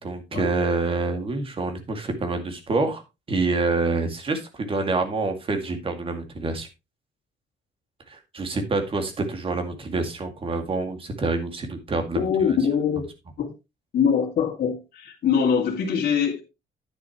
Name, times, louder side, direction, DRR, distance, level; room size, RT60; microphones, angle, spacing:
voice 1, 0.0-3.0 3.3-6.7 8.1-12.3, right 3 dB, 30° right, 2.2 m, -27 dB
voice 2, 12.2-13.1 13.4-13.5 13.9-16.4, left 7 dB, 55° left, 2.4 m, -23 dB
10.5 x 9.4 x 3.0 m
cardioid pair, 160°, 19 cm